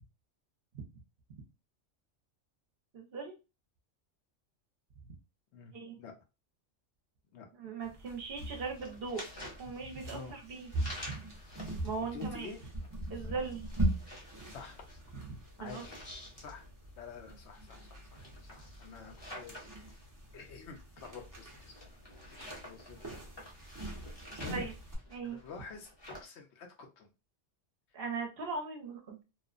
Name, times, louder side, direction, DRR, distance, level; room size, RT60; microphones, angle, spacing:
voice 1, 2.9-3.3 5.7-5.9 7.6-9.2 9.6-11.2 11.8-12.5 13.1-13.6 15.1-15.2 15.6-15.8 24.5-24.7 25.1-25.4 27.9-29.2, right 4 dB, 60° right, 2 dB, 0.8 m, -39 dB
voice 2, 5.5-6.1 7.3-7.5 10.1-10.4 12.1-12.6 14.5-14.8 15.6-16.0 16.4-16.6 17.0-19.9 20.3-21.9 22.3-23.2 24.4-24.7 25.2-27.1, left 4 dB, 70° left, 3 dB, 0.9 m, -48 dB
sound 1, 7.8-25.0, right 1 dB, 25° right, 0.5 m, -41 dB
sound 2, 8.2-26.2, left 1 dB, 25° left, 0.7 m, -51 dB
2.9 x 2.0 x 2.4 m, 0.28 s
omnidirectional pair, 1.2 m